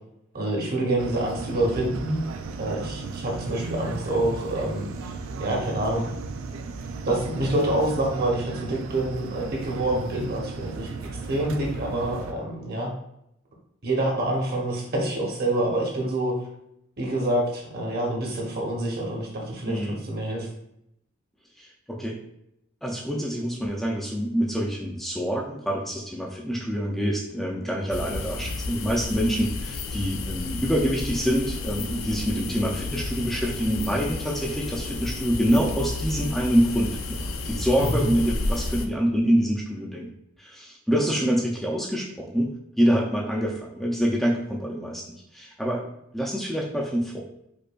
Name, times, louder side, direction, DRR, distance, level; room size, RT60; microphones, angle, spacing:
voice 1, 0.3-2.2 2.6-6.1 7.0-12.9 13.8-16.3 17.0-20.5 37.8-38.1, right 1 dB, 50° right, -1 dB, 0.9 m, -27 dB
sound 1, 1.0-12.3, right 4 dB, 75° right, 0.3 m, -35 dB
voice 2, 19.7-20.0 21.6-22.2 22.8-40.1 40.4-45.8 46.1-47.2, equal, ahead, -3 dB, 0.3 m, -26 dB
sound 2, 27.9-38.9, left 2 dB, 80° left, 0.4 m, -32 dB
4.9 x 2.2 x 2.3 m, 0.78 s
head